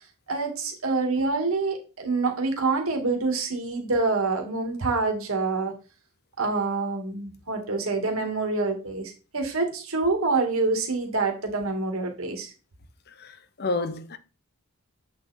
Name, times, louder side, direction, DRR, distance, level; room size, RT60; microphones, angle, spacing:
voice 1, 0.3-5.7 6.4-12.5, right 3 dB, 70° right, 2.0 m, -26 dB
voice 2, 13.2-14.2, left 3 dB, 45° left, 0.7 m, -30 dB
8.1 x 4.1 x 4.2 m
head